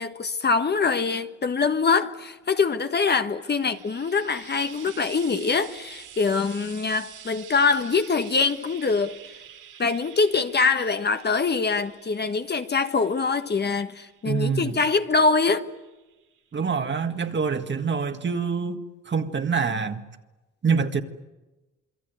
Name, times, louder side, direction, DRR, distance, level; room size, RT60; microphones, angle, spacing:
voice 1, 0.0-9.2 9.8-15.7, left 4 dB, 35° left, 1.4 m, -24 dB
Frying (food), 3.2-16.5 17.5-17.6, right 9 dB, 80° right, 3.3 m, -48 dB
voice 2, 14.2-14.8 16.5-20.1 20.6-21.0, right 5 dB, 35° right, 1.9 m, -26 dB
27.5 x 23.0 x 9.3 m
cardioid pair, 90°, 30 cm